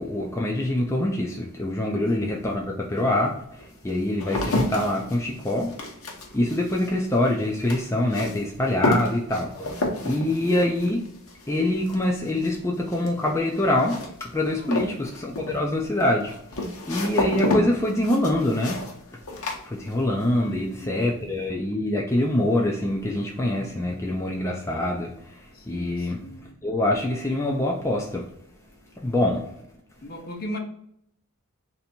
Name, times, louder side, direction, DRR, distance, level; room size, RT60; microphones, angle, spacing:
voice 1, 0.0-5.8 6.3-11.0 11.5-18.8 19.3-26.2 26.6-28.2 28.9-29.5, left 1 dB, 15° left, -1 dB, 0.4 m, -25 dB
voice 2, 1.8-2.5 10.1-10.6 14.5-14.8 20.3-21.2 25.5-26.6 30.0-30.6, left 1 dB, 45° left, 2 dB, 0.8 m, -39 dB
sound 1, 2.4-2.5 3.1-20.3 20.6-21.2, left 2 dB, 70° left, 0.9 m, -31 dB
3.4 x 2.7 x 4.3 m, 0.72 s
head